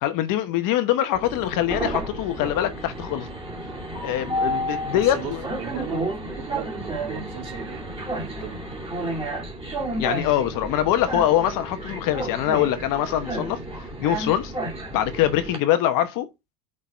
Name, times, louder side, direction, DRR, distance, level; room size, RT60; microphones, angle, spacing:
voice 1, 0.0-3.3 4.0-5.4 10.0-13.6 14.0-14.5 14.9-16.3, left 12 dB, 45° left, 1.1 m, -23 dB
Train, 1.1-15.6, right 1 dB, 10° right, 2.4 m, -31 dB
voice 2, 4.7-8.7, right 9 dB, 55° right, 3.3 m, -38 dB
6.4 x 4.0 x 5.5 m
supercardioid pair, 125°, 47 cm